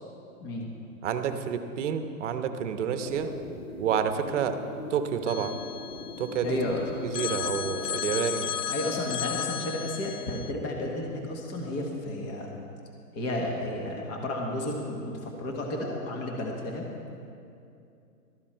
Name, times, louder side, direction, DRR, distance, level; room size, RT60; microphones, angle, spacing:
voice 1, 1.0-3.3 3.8-4.6 4.9-5.6 6.2-6.6 7.0-8.5, right 7 dB, 50° right, 8 dB, 1.0 m, -29 dB
sound 1, 3.0-8.1, left 3 dB, 50° left, 1.6 m, -41 dB
Telephone, 5.3-6.7 7.1-10.5, left 9 dB, 80° left, 0.8 m, -34 dB
voice 2, 6.4-7.0 8.7-12.5 13.1-16.9, left 1 dB, 20° left, 0 dB, 1.3 m, -32 dB
13.0 x 12.0 x 4.5 m, 2.6 s
hypercardioid pair, 150°, 46 cm